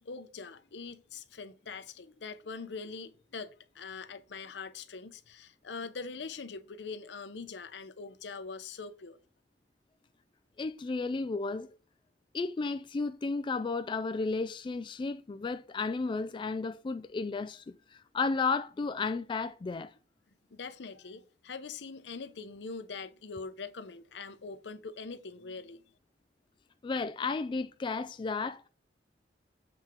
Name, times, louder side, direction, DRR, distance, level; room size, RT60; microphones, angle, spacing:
voice 1, 0.0-9.2 20.5-25.8, left 4 dB, 75° left, 0.7 m, -43 dB
voice 2, 10.6-11.8 12.3-19.9 26.8-28.7, left 4 dB, 25° left, 0.3 m, -33 dB
7.7 x 4.3 x 3.6 m
head